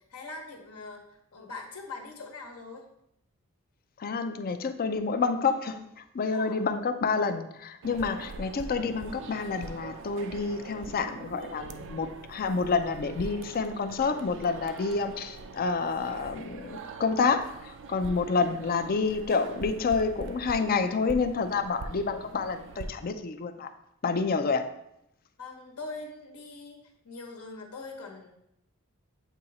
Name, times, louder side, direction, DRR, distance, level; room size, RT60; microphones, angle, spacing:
voice 1, 0.1-1.0 1.3-2.8 6.3-6.6 25.4-28.4, left 3 dB, 80° left, 1 dB, 1.1 m, -42 dB
voice 2, 4.0-23.7 24.0-24.7, left 4 dB, 40° left, 8 dB, 0.5 m, -28 dB
sound 1, 7.8-22.9, right 3 dB, 55° right, 0.4 m, -43 dB
8.1 x 2.8 x 4.1 m, 0.78 s
head